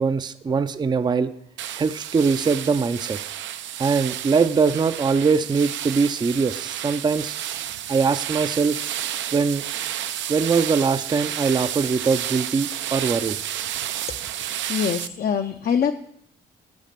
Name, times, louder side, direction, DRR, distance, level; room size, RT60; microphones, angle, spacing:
voice 1, 0.0-1.3 1.8-3.2 3.8-7.3 7.9-8.8 9.3-9.6 10.3-13.4, right 5 dB, 20° right, 12 dB, 0.5 m, -22 dB
sound 1, 1.6-15.1, right 11 dB, 70° right, 0.5 m, -31 dB
voice 2, 14.7-15.9, left 7 dB, 50° left, 6 dB, 0.6 m, -23 dB
10.5 x 5.0 x 6.7 m, 0.70 s
cardioid pair, 90°, 20 cm